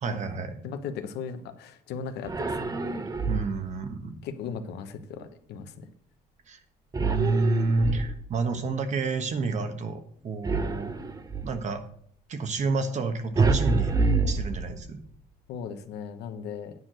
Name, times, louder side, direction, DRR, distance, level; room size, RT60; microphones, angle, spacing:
voice 1, 0.0-0.6 3.3-4.2 6.5-6.6 7.0-10.9 11.4-11.8 12.3-13.9 14.3-15.0, right 3 dB, 45° right, 8 dB, 1.3 m, -29 dB
voice 2, 0.6-3.0 4.2-5.9 15.5-16.7, left 6 dB, 80° left, 8 dB, 1.1 m, -37 dB
sound 1, 2.2-3.8 6.9-8.5 10.4-11.7 13.4-15.1, right 3 dB, 20° right, 0.8 m, -27 dB
9.5 x 4.6 x 7.5 m, 0.62 s
cardioid pair, 110°, 17 cm